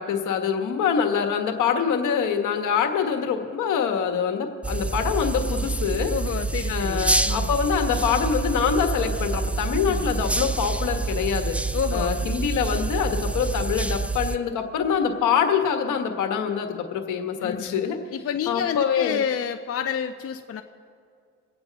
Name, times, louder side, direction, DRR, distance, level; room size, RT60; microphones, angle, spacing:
voice 1, 0.0-6.1 6.7-11.6 11.9-18.0 18.5-19.2, left 7 dB, 80° left, 5 dB, 1.5 m, -25 dB
sound 1, 4.6-14.4, right 3 dB, 5° right, 0.4 m, -27 dB
voice 2, 6.1-7.5 9.7-10.1 11.7-12.3 17.4-17.8 18.1-20.6, left 8 dB, 50° left, 7 dB, 0.7 m, -29 dB
24.5 x 8.9 x 4.0 m, 2.3 s
cardioid pair, 90°, 30 cm